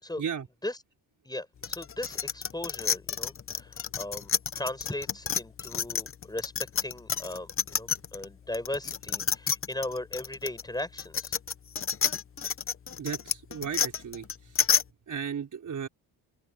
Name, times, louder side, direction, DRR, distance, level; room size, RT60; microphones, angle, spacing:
voice 1, 1.2-11.4, left 1 dB, 10° left, 7.2 m, -37 dB
sound 1, 1.6-8.2 8.5-14.8, left 7 dB, 30° left, 0.8 m, -29 dB
voice 2, 13.0-14.6 15.1-15.9, right 7 dB, 45° right, 4.8 m, -35 dB
open air
cardioid pair, 105°, 41 cm